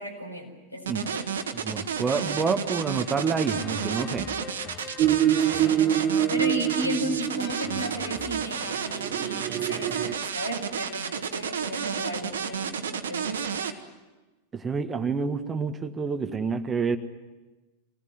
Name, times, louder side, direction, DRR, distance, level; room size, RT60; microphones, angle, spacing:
voice 1, 0.0-1.4 5.5-5.9 6.3-13.6, equal, 90° left, 1 dB, 4.8 m, -34 dB
sound 1, 0.9-13.7, right 7 dB, 65° right, 1.7 m, -31 dB
voice 2, 1.5-4.3 14.5-17.0, right 5 dB, 20° right, 8 dB, 1.6 m, -28 dB
sound 2, 3.5-9.2, left 5 dB, 35° left, 2.6 m, -42 dB
sound 3, 5.0-7.9 8.9-10.1, right 11 dB, 35° right, 1.0 m, -25 dB
25.5 x 19.0 x 9.5 m, 1.2 s
figure-of-eight pair, 90°, 0 cm